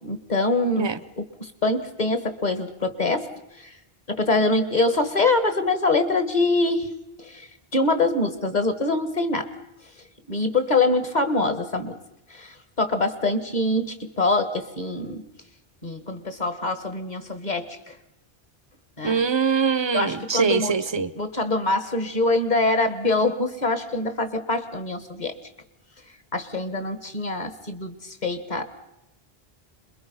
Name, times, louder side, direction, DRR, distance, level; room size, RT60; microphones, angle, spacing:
voice 1, 0.0-0.9 1.2-3.8 4.1-6.9 7.2-9.5 10.0-12.0 12.3-15.2 15.8-18.0 19.0-19.2 19.9-20.7 21.2-25.4 26.3-28.6, left 2 dB, 45° left, 10 dB, 1.9 m, -24 dB
voice 2, 19.0-21.1, right 5 dB, 30° right, 15 dB, 0.8 m, -23 dB
27.0 x 22.0 x 5.6 m, 0.91 s
omnidirectional pair, 1.1 m